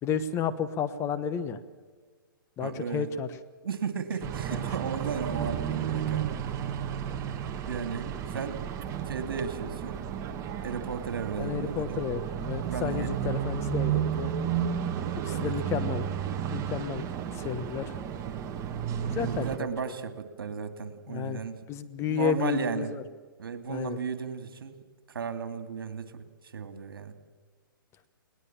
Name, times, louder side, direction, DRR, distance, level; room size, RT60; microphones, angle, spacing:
voice 1, 0.0-1.6 2.6-3.3 4.5-4.7 5.4-5.5 11.4-14.3 15.2-16.0 16.5-17.0 17.3-17.8 19.0-19.9 21.1-21.4 21.7-23.0 23.7-24.0, left 7 dB, 25° left, 11 dB, 1.2 m, -32 dB
voice 2, 2.6-3.1 3.6-6.3 7.7-8.6 9.1-10.0 10.6-12.0 12.6-13.2 15.3-15.5 19.2-21.7 22.0-22.9 23.4-24.8 25.1-26.2 26.5-27.1, right 6 dB, 75° right, 9 dB, 2.5 m, -35 dB
sound 1, 4.2-19.6, right 9 dB, 25° right, 1.5 m, -32 dB
21.0 x 19.5 x 7.4 m, 1.5 s
hypercardioid pair, 140°, 12 cm